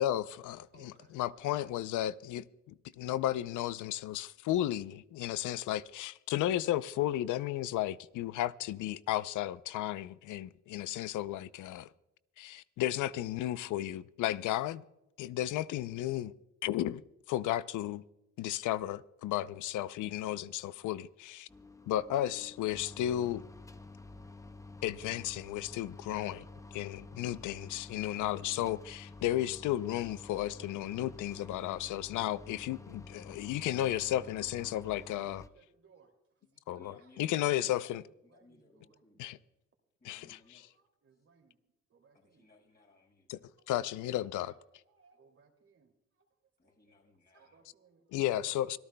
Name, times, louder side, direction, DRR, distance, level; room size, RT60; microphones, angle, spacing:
voice 1, 0.0-11.9 12.4-14.8 15.2-16.3 16.6-17.0 17.3-18.0 18.4-21.5 21.9-23.4 24.8-26.4 26.7-35.4 36.7-38.0 39.2-39.4 40.0-40.6 43.3-43.4 43.7-44.5 48.1-48.8, left 13 dB, 80° left, 0.6 m, -34 dB
voice 2, 0.7-1.2 1.4-1.6 26.6-27.2 33.4-34.0 34.6-35.1 35.5-36.1 36.7-37.8 38.3-39.2 40.3-41.6 41.9-42.5 44.2-45.9 47.3-48.0 48.4-48.8, right 5 dB, 50° right, 2.6 m, -65 dB
sound 1, 21.5-35.5, left 3 dB, 10° left, 0.7 m, -50 dB
voice 3, 36.4-39.3 40.0-40.7 41.1-41.3 42.1-43.3 46.6-47.7, left 2 dB, 30° left, 5.7 m, -63 dB
25.0 x 14.0 x 2.2 m
cardioid pair, 90°, 30 cm